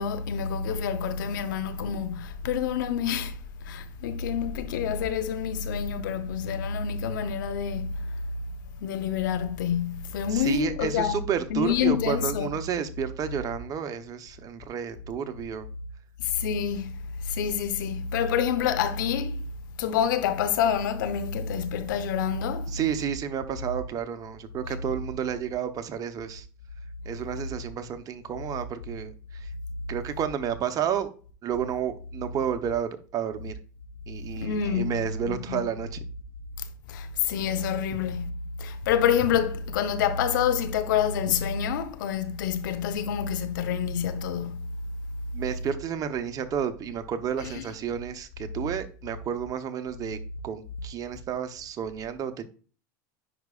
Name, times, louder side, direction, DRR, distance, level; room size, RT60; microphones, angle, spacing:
voice 1, 0.0-3.4 3.6-7.9 8.8-11.2 11.5-12.5 16.2-16.9 17.2-19.4 19.8-22.7 34.4-35.6 36.9-38.3 38.6-44.6 47.4-47.6, left 8 dB, 80° left, 0.9 m, -27 dB
voice 2, 10.3-15.7 22.7-26.5 27.0-29.5 29.9-31.1 31.4-33.6 34.1-36.0 45.3-52.5, right 8 dB, 35° right, 0.9 m, -31 dB
10.0 x 4.6 x 2.4 m
supercardioid pair, 115°, 10 cm